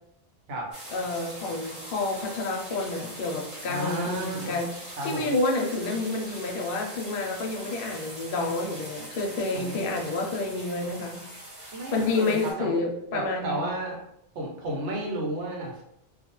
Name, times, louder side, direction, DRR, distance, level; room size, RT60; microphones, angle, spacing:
sound 1, 0.7-12.5, right 1 dB, 35° right, 0.9 m, -42 dB
voice 1, 0.9-11.2 11.9-13.6, left 3 dB, 65° left, 1 dB, 0.7 m, -29 dB
voice 2, 3.7-4.6 4.9-5.3 9.5-9.8 11.7-12.7 13.1-14.0 14.3-15.8, right 1 dB, 80° right, -1 dB, 1.0 m, -32 dB
2.3 x 2.0 x 2.9 m, 0.80 s
omnidirectional pair, 1.1 m